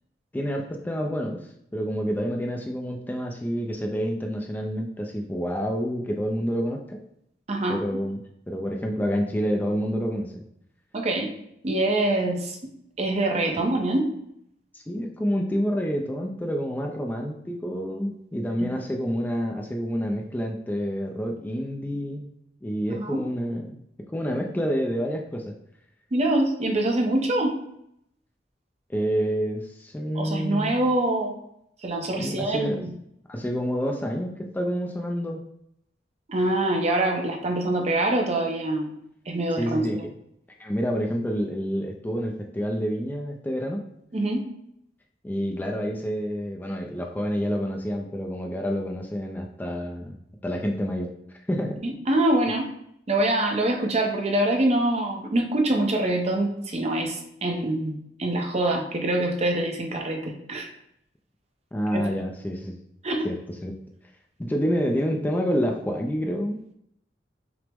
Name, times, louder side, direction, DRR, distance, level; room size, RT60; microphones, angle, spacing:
voice 1, 0.3-7.0 7.7-8.2 8.5-10.4 13.5-13.6 14.7-22.3 22.6-23.8 24.1-25.5 28.9-30.8 32.2-32.9 33.3-35.4 39.6-40.1 40.6-43.8 45.2-50.2 50.4-51.8 61.7-62.8 63.2-63.7 64.4-66.6, equal, 10° left, 1 dB, 0.3 m, -28 dB
voice 2, 7.5-7.8 10.9-11.3 11.6-12.7 13.0-14.1 18.6-18.8 22.9-23.2 26.1-27.6 30.1-31.3 31.8-32.9 36.3-39.0 39.3-40.0 44.1-44.4 51.8-52.7 53.1-57.9 58.2-60.7 61.9-62.2 63.0-63.3, right 1 dB, 40° right, 3 dB, 0.6 m, -25 dB
5.8 x 2.0 x 3.4 m, 0.75 s
head